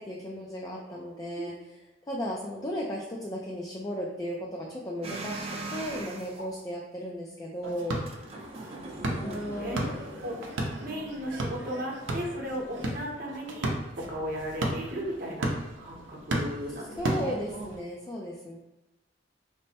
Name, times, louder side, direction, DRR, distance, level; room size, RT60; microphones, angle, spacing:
voice 1, 0.0-1.5 2.1-8.0 9.2-10.1 17.0-18.6, equal, 20° left, -2 dB, 0.4 m, -35 dB
sound 1, 5.0-6.4 7.9-12.9, right 2 dB, 35° right, 0.5 m, -42 dB
sound 2, 7.6-17.8, right 1 dB, 75° right, 0.6 m, -35 dB
voice 2, 8.6-9.9 10.2-10.4 10.8-15.5 15.8-17.4, equal, 50° right, -1 dB, 0.8 m, -36 dB
3.2 x 2.1 x 4.2 m, 1.0 s
head